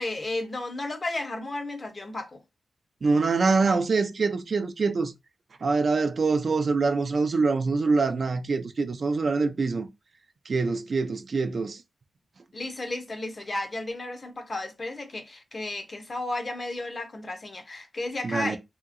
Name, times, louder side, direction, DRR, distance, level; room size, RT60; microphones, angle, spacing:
voice 1, 0.0-2.4 12.5-18.6, left 2 dB, 40° left, 0.7 m, -33 dB
voice 2, 3.0-5.1 5.6-9.9 10.5-11.8 18.2-18.6, right 4 dB, 60° right, 0.4 m, -24 dB
2.8 x 2.7 x 2.5 m
cardioid pair, 70°, 0 cm